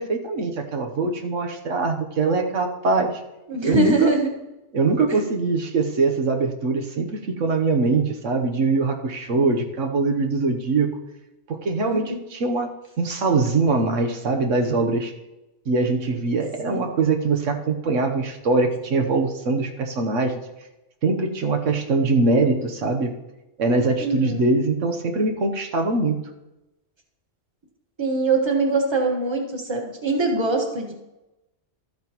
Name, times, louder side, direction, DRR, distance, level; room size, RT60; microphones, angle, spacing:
voice 1, 0.0-3.2 3.6-4.1 4.7-10.9 11.5-15.1 15.7-20.4 21.0-23.1 23.6-26.2, right 3 dB, 85° right, 4 dB, 1.3 m, -22 dB
voice 2, 3.5-4.3 5.1-5.3 11.8-12.2 16.7-16.8 24.0-24.4 28.0-30.9, right 2 dB, 20° right, 0 dB, 1.5 m, -23 dB
13.0 x 8.7 x 3.0 m, 0.97 s
omnidirectional pair, 1.2 m